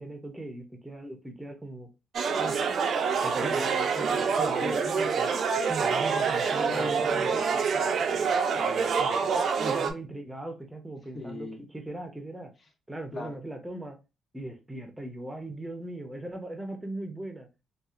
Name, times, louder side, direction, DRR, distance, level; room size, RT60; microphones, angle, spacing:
voice 1, 0.0-1.9 2.4-2.6 3.2-3.6 4.3-5.3 5.7-7.4 9.0-11.5 11.7-12.5 12.9-14.0 14.3-17.5, right 2 dB, 10° right, 0.7 m, -39 dB
sound 1, 2.1-9.9, right 5 dB, 60° right, 0.4 m, -26 dB
voice 2, 3.4-5.1 6.6-9.3 9.6-9.8 11.1-11.6 13.1-13.4, left 2 dB, 35° left, 0.8 m, -40 dB
2.7 x 2.4 x 2.4 m
cardioid pair, 90°, 0 cm